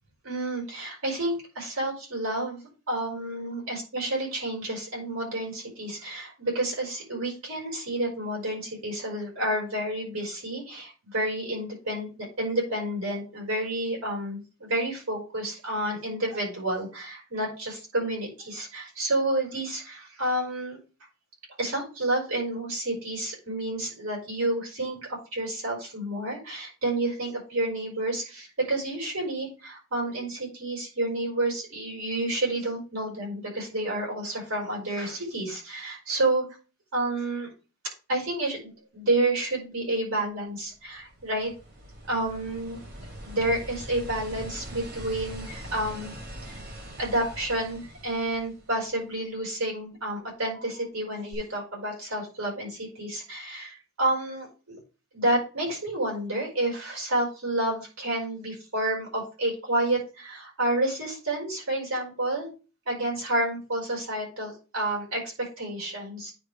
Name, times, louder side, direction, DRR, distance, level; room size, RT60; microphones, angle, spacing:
voice 1, 0.2-20.8 21.6-36.4 36.9-37.5 38.1-41.5 42.1-42.8 43.2-46.1 46.4-46.6 47.0-54.8 55.1-62.5 62.8-66.3, right 1 dB, 85° right, -3 dB, 4.8 m, -30 dB
sound 1, 40.7-49.2 51.3-51.4, right 1 dB, 50° right, 2.0 m, -42 dB
9.5 x 3.2 x 5.0 m, 0.33 s
head